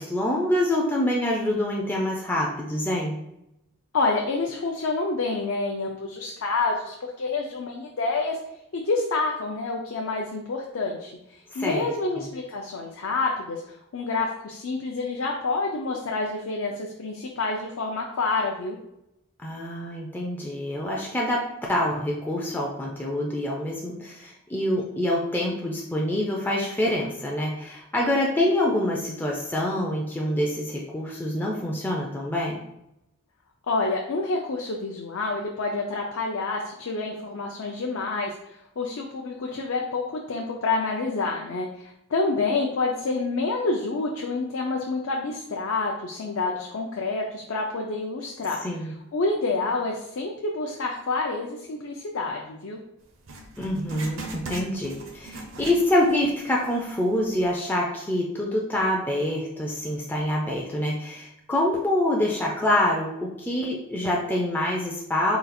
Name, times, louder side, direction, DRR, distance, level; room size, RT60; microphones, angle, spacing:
voice 1, 0.0-3.2 11.5-11.9 19.4-32.6 48.6-48.9 53.6-65.4, left 1 dB, 10° left, -3 dB, 0.4 m, -26 dB
voice 2, 3.9-8.4 8.7-18.8 33.7-48.6 49.1-52.8, left 3 dB, 65° left, 0 dB, 0.5 m, -28 dB
Writing, 53.2-56.3 56.6-56.7 57.4-57.5, right 2 dB, 60° right, 0.6 m, -39 dB
3.9 x 2.3 x 4.1 m, 0.83 s
head